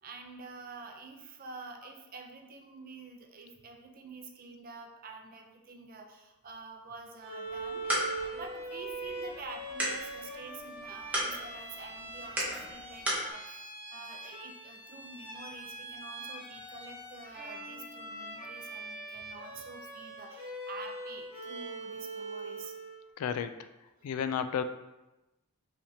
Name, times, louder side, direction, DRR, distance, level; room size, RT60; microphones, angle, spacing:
voice 1, 0.0-22.7 24.0-24.1, right 3 dB, 40° right, 3 dB, 0.5 m, -48 dB
Bowed string instrument, 7.2-23.0, right 2 dB, 25° right, 1.3 m, -42 dB
sound 1, 7.5-13.3, equal, 5° right, 0.9 m, -37 dB
voice 2, 23.2-23.7 24.0-24.6, left 7 dB, 75° left, 10 dB, 0.3 m, -32 dB
5.6 x 3.3 x 2.7 m, 1.0 s
head